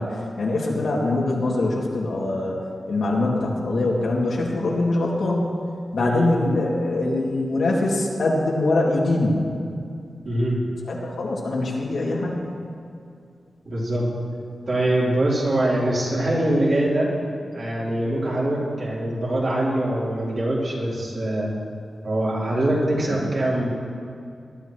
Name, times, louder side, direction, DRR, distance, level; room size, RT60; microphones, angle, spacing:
voice 1, 0.0-2.6 2.9-5.6 5.9-9.4 10.8-12.5 23.1-23.2, left 2 dB, 80° left, -3 dB, 2.4 m, -23 dB
voice 2, 6.0-6.3 10.2-10.6 13.7-14.1 14.7-17.1 17.5-21.5 22.0-23.7, right 1 dB, 55° right, -6 dB, 3.7 m, -23 dB
20.0 x 12.0 x 3.1 m, 2.4 s
wide cardioid pair, 140°, 0 cm